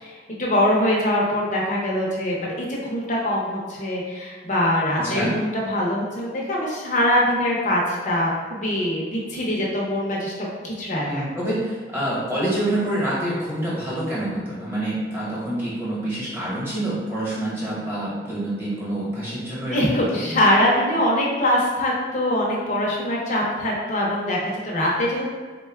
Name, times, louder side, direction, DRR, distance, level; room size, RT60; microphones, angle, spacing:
voice 1, 0.0-11.2 19.6-25.3, left 1 dB, 45° left, -3 dB, 0.8 m, -23 dB
voice 2, 5.0-5.4 10.9-20.4, right 1 dB, 15° right, -8 dB, 1.1 m, -27 dB
3.8 x 2.2 x 3.5 m, 1.5 s
head